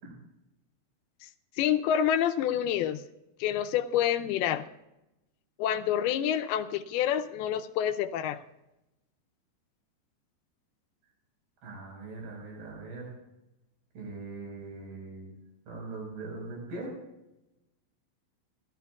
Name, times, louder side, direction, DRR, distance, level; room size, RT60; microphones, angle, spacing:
voice 1, 1.6-3.0 3.4-4.6 5.6-8.4, left 10 dB, 80° left, 8 dB, 2.5 m, -27 dB
voice 2, 11.6-13.1 13.9-15.4 15.7-16.9, right 3 dB, 65° right, 0 dB, 6.9 m, -41 dB
30.0 x 14.5 x 2.4 m, 0.94 s
omnidirectional pair, 4.8 m